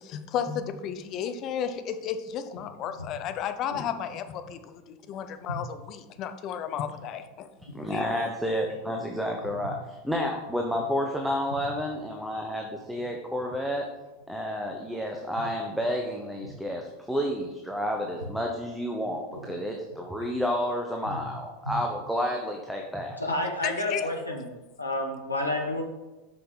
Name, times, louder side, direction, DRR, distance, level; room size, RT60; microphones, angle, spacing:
voice 1, 0.0-7.5 7.9-8.1 23.6-24.1, left 8 dB, 40° left, 9 dB, 0.8 m, -33 dB
voice 2, 7.7-13.9 14.3-19.2 19.5-23.2, equal, ahead, 1 dB, 1.1 m, -30 dB
voice 3, 23.2-24.5 24.8-25.8, left 1 dB, 85° left, 1 dB, 1.3 m, -30 dB
7.7 x 5.9 x 5.6 m, 1.1 s
figure-of-eight pair, 85°, 0 cm